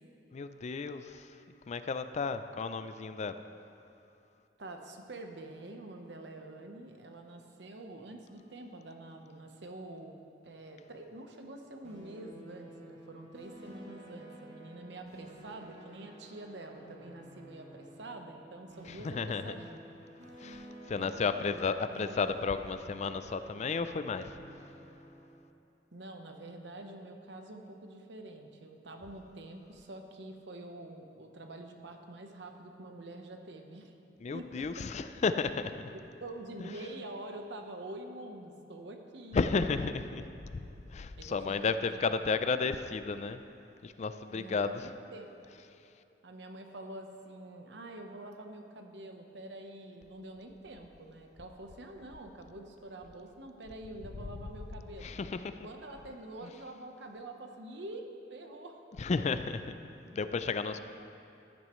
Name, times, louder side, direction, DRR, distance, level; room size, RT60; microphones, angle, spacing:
voice 1, 0.3-1.4 1.7-3.4 18.8-19.6 20.4-24.4 34.2-35.9 36.6-36.9 39.3-40.2 40.5-40.6 40.9-43.4 43.8-44.9 45.5-45.7 55.0-55.6 56.4-56.5 58.9-59.7 60.1-60.8, left 4 dB, 40° left, 11 dB, 0.4 m, -33 dB
voice 2, 4.6-10.2 10.4-19.8 20.9-21.5 21.9-22.2 25.9-34.0 34.3-34.9 35.9-39.6 41.2-42.0 42.2-42.3 44.3-45.4 46.2-55.1 55.6-58.8 60.7-60.8, right 1 dB, 70° right, 4 dB, 1.0 m, -46 dB
sound 1, 11.8-25.3, right 1 dB, 90° right, 2.5 m, -52 dB
15.5 x 10.5 x 3.1 m, 2.8 s
head